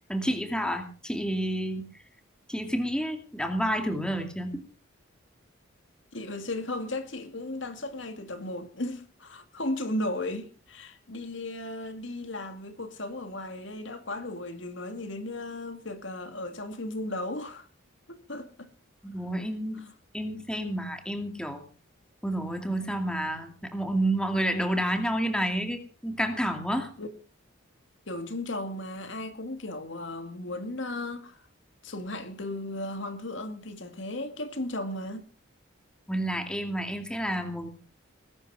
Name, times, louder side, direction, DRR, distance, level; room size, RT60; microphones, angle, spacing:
voice 1, 0.1-1.8 2.5-4.6 19.0-19.8 20.1-21.6 22.2-26.9 36.1-37.7, right 1 dB, 5° left, 2.4 m, -29 dB
voice 2, 6.1-17.7 18.1-18.7 19.7-19.9 27.0-27.1 28.1-31.4 31.8-35.2, left 1 dB, 60° left, 2.1 m, -35 dB
20.5 x 12.0 x 4.8 m
head